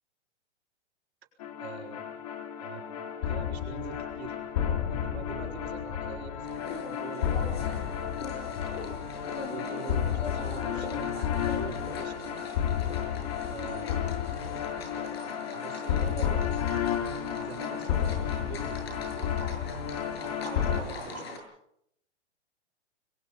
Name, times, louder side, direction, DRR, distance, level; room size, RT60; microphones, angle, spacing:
sound 1, 1.4-20.8, left 9 dB, 35° left, 2.5 m, -32 dB
voice 1, 1.6-2.0 2.6-2.9 3.2-4.4 4.9-8.1 8.4-8.8 9.5-12.4 13.5-14.0 14.9-15.1 15.5-16.5 17.1-19.6 20.2-21.4, right 7 dB, 65° right, 2 dB, 6.0 m, -44 dB
sound 2, 6.4-21.4, left 3 dB, 60° left, 7.9 m, -42 dB
30.0 x 22.5 x 5.4 m, 0.75 s
hypercardioid pair, 175°, 35 cm